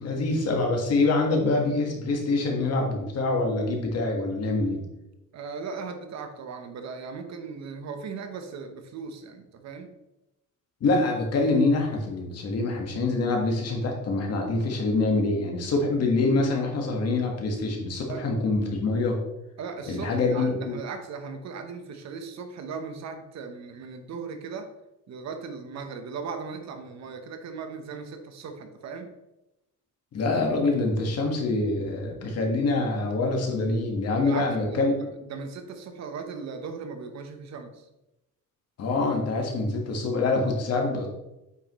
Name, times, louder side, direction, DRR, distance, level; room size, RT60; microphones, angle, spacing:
voice 1, 0.0-4.8 10.8-19.2 19.9-20.8 30.1-35.1 38.8-41.1, left 3 dB, 50° left, 1 dB, 1.6 m, -25 dB
voice 2, 5.3-9.9 18.1-18.3 19.6-24.7 25.1-29.1 34.1-37.9, right 5 dB, 55° right, 7 dB, 1.0 m, -38 dB
8.3 x 5.7 x 3.1 m, 0.93 s
cardioid pair, 170°, 33 cm